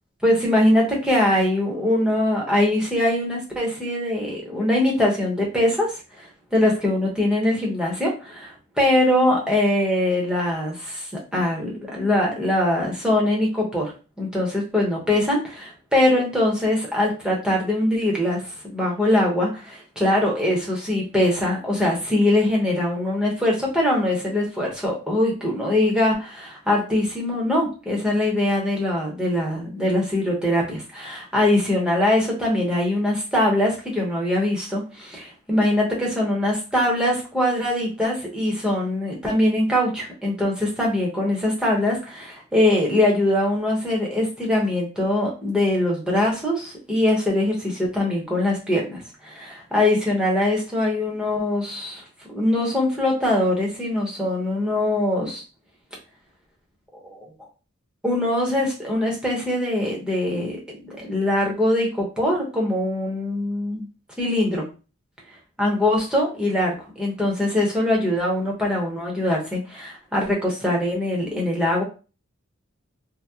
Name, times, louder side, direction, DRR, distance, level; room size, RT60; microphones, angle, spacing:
voice 1, 0.2-52.0 52.3-55.4 56.9-57.3 58.0-63.9 64.2-64.7 65.6-71.8, left 1 dB, 5° right, -3 dB, 0.9 m, -22 dB
2.8 x 2.1 x 3.5 m, 0.34 s
head